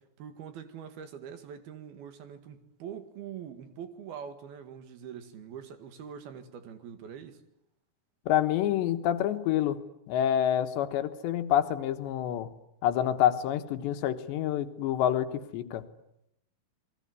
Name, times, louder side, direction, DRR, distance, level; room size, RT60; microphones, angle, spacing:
voice 1, 0.0-7.4, right 8 dB, 65° right, 3.7 m, -44 dB
voice 2, 8.3-9.8 10.1-12.5 12.8-15.8, left 11 dB, 85° left, 3.6 m, -27 dB
28.5 x 21.0 x 9.7 m
omnidirectional pair, 4.9 m